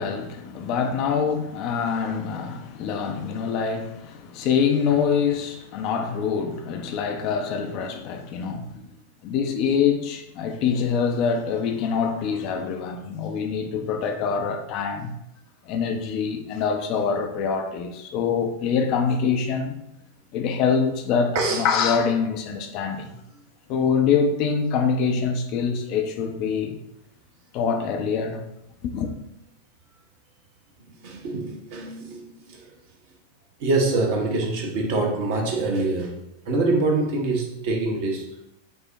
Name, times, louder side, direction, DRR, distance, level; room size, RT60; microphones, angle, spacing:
voice 1, 0.0-8.7 9.2-15.1 15.6-19.8 20.3-23.1 23.7-26.8 27.5-28.4 28.8-29.1, left 6 dB, 40° left, 0.4 m, -25 dB
voice 2, 31.0-32.7 33.6-36.2 36.5-38.2, right 2 dB, 50° right, 0.8 m, -25 dB
5.4 x 2.0 x 2.6 m
figure-of-eight pair, 90°, 0 cm